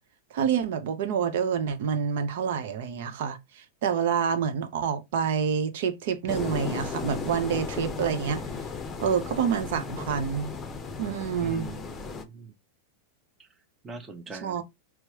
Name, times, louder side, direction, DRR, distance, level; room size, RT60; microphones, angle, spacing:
voice 1, 0.3-8.4 9.0-10.5 11.0-11.7 14.4-14.6, right 7 dB, 65° right, 0.7 m, -27 dB
sound 1, 6.3-12.2, left 5 dB, 25° left, 0.6 m, -35 dB
voice 2, 11.4-12.5 13.4-13.5 13.8-14.6, right 3 dB, 20° right, 0.9 m, -41 dB
4.5 x 2.1 x 2.9 m
hypercardioid pair, 110°, 0 cm